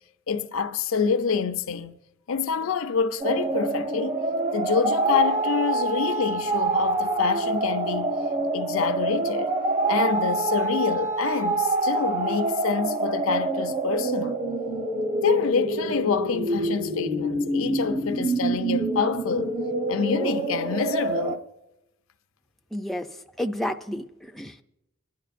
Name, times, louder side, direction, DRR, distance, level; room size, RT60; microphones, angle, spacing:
voice 1, 0.3-2.0 2.3-4.2 4.5-8.2 8.5-9.5 9.9-14.4 15.2-19.5 19.9-21.4, left 5 dB, 75° left, 0.6 m, -27 dB
sound 1, 3.2-21.4, right 2 dB, 35° right, 1.0 m, -26 dB
voice 2, 22.7-24.6, left 1 dB, ahead, 0.4 m, -31 dB
26.0 x 11.0 x 2.5 m
head